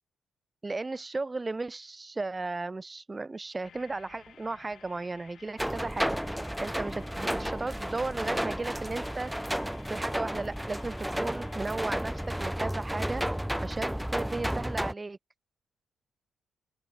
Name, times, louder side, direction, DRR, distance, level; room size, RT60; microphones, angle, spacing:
voice 1, 0.6-6.2 6.6-9.3 9.9-13.2 13.6-15.2, right 3 dB, 25° right, 2.2 m, -35 dB
sound 1, 3.6-12.4, left 9 dB, 55° left, 6.8 m, -56 dB
sound 2, 5.6-14.9, equal, 5° right, 0.9 m, -32 dB
open air
hypercardioid pair, 45°, 0 cm